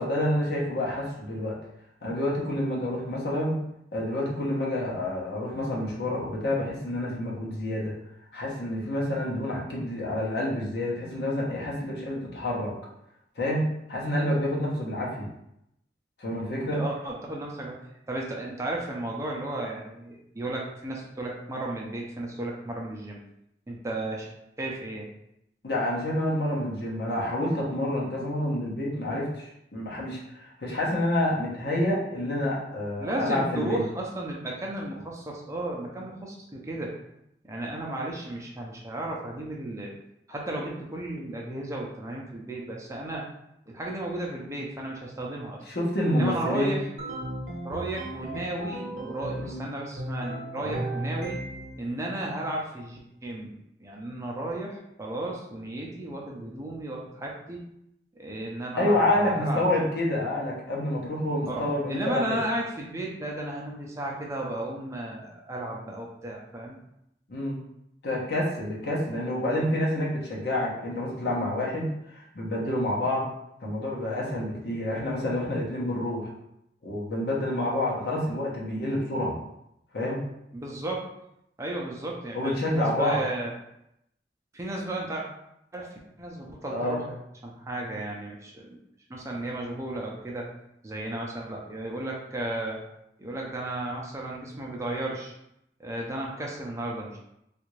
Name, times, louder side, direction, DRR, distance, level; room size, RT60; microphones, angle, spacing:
voice 1, 0.0-1.6 2.0-3.6 3.9-7.9 8.3-12.7 13.4-15.3 16.2-16.8 25.6-33.8 45.7-46.8 49.4-49.6 50.6-50.8 58.8-62.4 67.3-67.6 68.0-73.3 73.6-76.3 76.8-79.4 79.9-80.2 82.3-83.2 86.7-87.0, left 1 dB, 65° left, -4 dB, 0.9 m, -28 dB
voice 2, 16.5-17.8 18.1-23.2 23.7-24.3 24.6-25.1 33.0-37.0 37.4-39.9 40.3-43.3 43.7-45.6 46.1-46.9 47.6-51.4 51.8-53.5 53.8-57.6 58.2-59.7 61.5-66.8 80.5-81.1 81.6-83.5 84.5-85.2 85.7-87.2 87.4-88.8 89.1-90.5 90.8-92.9 93.2-95.3 95.8-97.2, right 1 dB, 15° right, -2 dB, 0.5 m, -34 dB
sound 1, 47.0-49.6 50.0-51.8, right 1 dB, 65° right, 0.7 m, -35 dB
3.4 x 2.5 x 3.1 m, 0.80 s
head